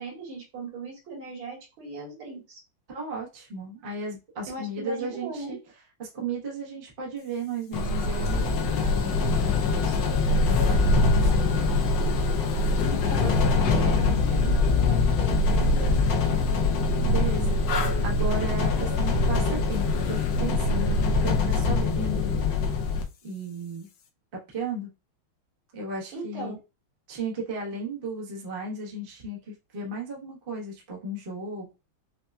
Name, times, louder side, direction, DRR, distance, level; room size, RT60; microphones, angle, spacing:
voice 1, 0.0-2.6 4.5-5.5 12.8-16.5 26.1-26.5, right 3 dB, 65° right, -3 dB, 2.4 m, -38 dB
voice 2, 2.9-5.6 6.0-10.0 10.3-11.7 17.0-17.6 18.0-22.4 23.2-23.9 24.5-24.9 25.7-26.6 27.1-31.7, right 2 dB, 45° right, -2 dB, 0.7 m, -35 dB
sound 1, 7.7-23.0, left 3 dB, 75° left, 1.0 m, -23 dB
5.6 x 2.1 x 2.3 m, 0.28 s
omnidirectional pair, 2.4 m